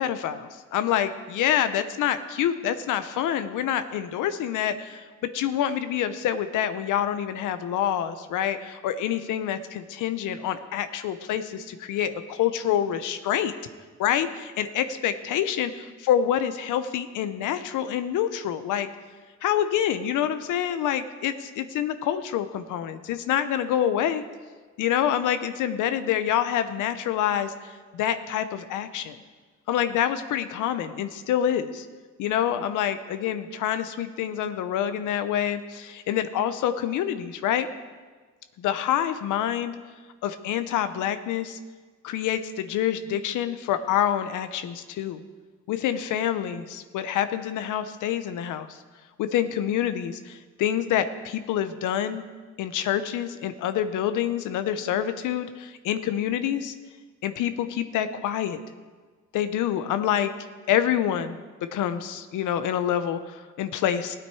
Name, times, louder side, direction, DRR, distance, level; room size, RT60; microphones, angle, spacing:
voice 1, 0.0-5.0 5.3-13.5 14.0-18.9 19.4-24.2 24.8-29.2 29.7-31.9 32.2-37.7 38.6-39.8 40.2-41.6 42.0-45.2 45.7-48.8 49.2-52.2 52.6-56.7 57.2-58.6 59.3-60.3 60.7-61.4 61.7-64.2, left 10 dB, 85° left, 11 dB, 0.8 m, -27 dB
16.5 x 8.8 x 4.7 m, 1.4 s
cardioid pair, 90°, 30 cm